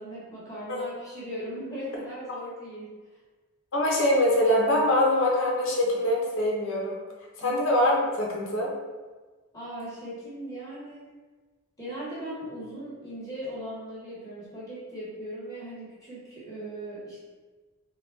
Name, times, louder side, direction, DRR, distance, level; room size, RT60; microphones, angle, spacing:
voice 1, 0.0-3.0 7.4-7.6 9.5-11.1 11.8-17.2, right 1 dB, 15° left, -10 dB, 1.5 m, -38 dB
voice 2, 3.7-7.0 7.4-8.7, left 1 dB, 65° left, -3 dB, 0.9 m, -23 dB
3.5 x 2.5 x 4.0 m, 1.3 s
head